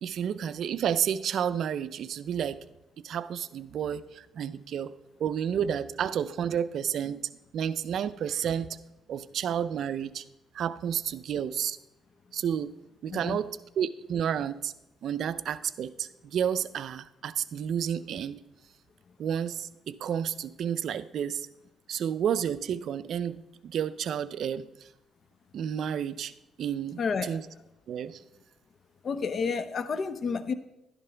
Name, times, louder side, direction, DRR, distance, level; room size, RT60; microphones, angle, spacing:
voice 1, 0.0-2.6 3.0-4.9 5.2-8.8 9.1-10.2 10.5-11.8 12.3-12.7 13.0-14.7 15.0-18.4 19.2-21.5 21.9-24.7 25.5-27.4 27.9-28.2, right 8 dB, 70° right, 14 dB, 0.5 m, -31 dB
voice 2, 13.1-13.4 27.0-27.4 29.0-30.5, left 5 dB, 50° left, 12 dB, 0.7 m, -30 dB
12.0 x 10.5 x 3.4 m, 0.91 s
cardioid pair, 90°, 0 cm